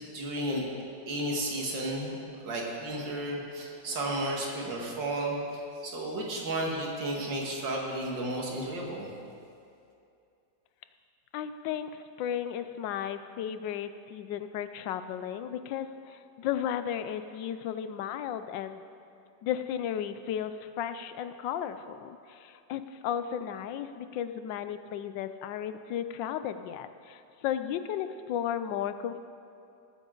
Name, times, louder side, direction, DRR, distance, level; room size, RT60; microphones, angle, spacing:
voice 1, 0.1-0.6 1.1-9.2, right 1 dB, 85° right, -1 dB, 2.5 m, -33 dB
voice 2, 11.3-18.8 19.4-29.2, left 9 dB, 85° left, 11 dB, 1.3 m, -34 dB
18.0 x 9.3 x 3.9 m, 2.5 s
omnidirectional pair, 1.9 m